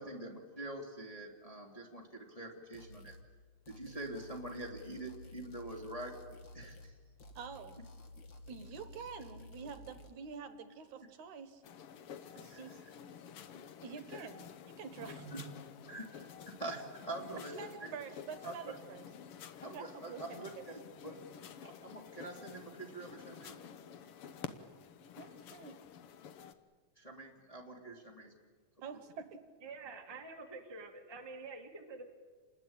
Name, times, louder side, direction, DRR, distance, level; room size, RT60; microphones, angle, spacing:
voice 1, 0.0-3.1 3.7-6.1 6.5-6.9 12.5-12.6 14.9-15.4 15.9-17.5 18.4-18.7 19.6-20.5 21.0-21.2 21.6-23.6 27.0-28.3, right 2 dB, 10° left, 0 dB, 2.2 m, -45 dB
sound 1, 2.7-3.3 3.7-6.9 7.2-10.1, left 2 dB, 45° left, 1.8 m, -53 dB
voice 2, 7.4-7.8 8.5-11.6 12.4-12.7 13.8-15.3 17.5-19.1 19.7-20.7 25.2-25.8 28.8-29.3, right 6 dB, 65° right, 10 dB, 2.5 m, -47 dB
sound 2, 11.6-26.5, left 8 dB, 70° left, 1.3 m, -51 dB
voice 3, 29.6-32.1, right 3 dB, 20° right, 2 dB, 0.7 m, -47 dB
28.5 x 20.0 x 8.8 m, 1.5 s
omnidirectional pair, 3.9 m